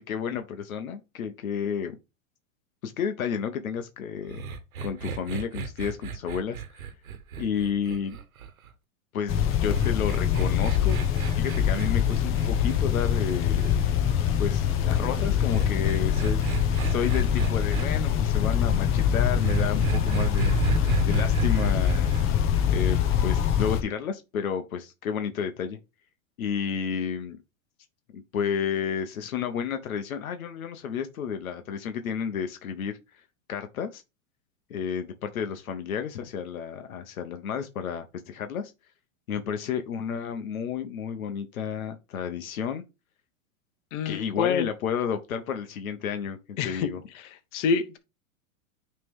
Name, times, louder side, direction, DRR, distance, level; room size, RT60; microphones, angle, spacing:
voice 1, 0.0-2.0 2.8-4.4 4.8-6.8 7.4-8.2 9.1-11.0 11.3-13.7 14.4-16.5 16.8-22.1 22.7-25.8 26.4-27.4 28.1-33.2 33.5-34.0 34.7-38.7 39.3-42.8 44.0-47.0, left 7 dB, 90° left, 1.0 m, -31 dB
sound 1, 4.3-8.7 9.6-13.8 15.1-17.9 19.4-22.2, right 6 dB, 90° right, 1.3 m, -33 dB
sound 2, 9.3-23.8, left 9 dB, 30° left, 0.9 m, -24 dB
voice 2, 43.9-44.7 46.6-46.9 47.2-48.0, left 6 dB, 60° left, 1.2 m, -27 dB
9.5 x 3.4 x 3.6 m
hypercardioid pair, 125°, 41 cm